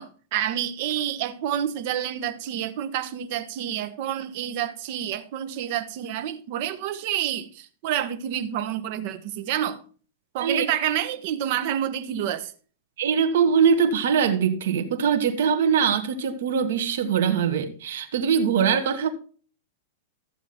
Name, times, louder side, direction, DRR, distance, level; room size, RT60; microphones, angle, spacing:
voice 1, 0.0-9.8 10.3-12.5, right 10 dB, 50° right, 1.2 m, -28 dB
voice 2, 13.0-19.1, right 7 dB, 75° right, 1.8 m, -22 dB
14.0 x 7.2 x 4.4 m
supercardioid pair, 155°, 0 cm